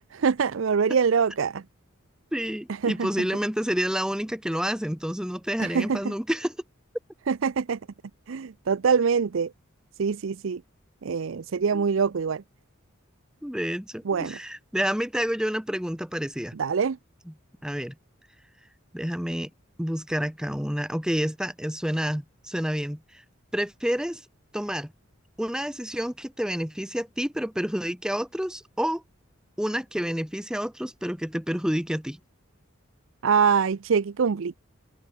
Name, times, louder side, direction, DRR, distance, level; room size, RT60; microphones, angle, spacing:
voice 1, 0.1-1.6 2.8-3.1 5.6-6.1 7.3-7.8 8.3-9.5 10.0-10.6 11.0-12.4 14.1-14.4 16.5-17.0 33.2-34.6, right 6 dB, 70° right, 0.5 m, -24 dB
voice 2, 2.3-6.6 11.7-11.8 13.4-16.5 17.6-17.9 18.9-19.5 19.8-23.0 23.5-24.2 24.5-24.9 25.4-29.0 29.6-32.2, equal, 5° right, 1.2 m, -29 dB
head